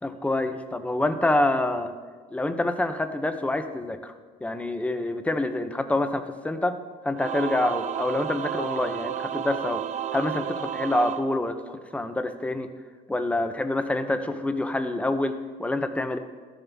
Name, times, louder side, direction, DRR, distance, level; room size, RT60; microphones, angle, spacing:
voice 1, 0.0-1.9 2.3-4.1 4.4-9.8 10.1-12.7 13.1-16.2, left 2 dB, 10° left, 9 dB, 0.6 m, -27 dB
Singing / Musical instrument, 7.2-12.0, right 10 dB, 45° right, 0.4 m, -32 dB
13.0 x 7.3 x 3.5 m, 1.5 s
cardioid pair, 110°, 17 cm